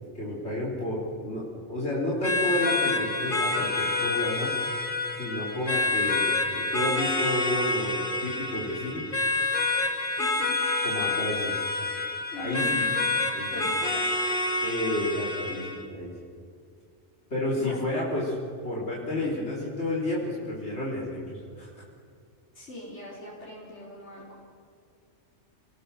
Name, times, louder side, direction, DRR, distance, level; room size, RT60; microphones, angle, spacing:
voice 1, 0.1-4.5 5.2-9.0 10.8-11.6 12.4-12.9 13.2-13.7 14.6-16.1 17.3-18.4 18.6-21.7, left 1 dB, 70° left, -5 dB, 4.2 m, -31 dB
sound 1, 2.2-15.8, left 3 dB, 50° left, 2.3 m, -28 dB
voice 2, 10.2-10.6 12.3-13.1 13.5-14.1 17.6-17.8 22.5-24.4, left 1 dB, 85° left, -6 dB, 5.1 m, -41 dB
29.5 x 19.5 x 6.9 m, 2.3 s
omnidirectional pair, 1.2 m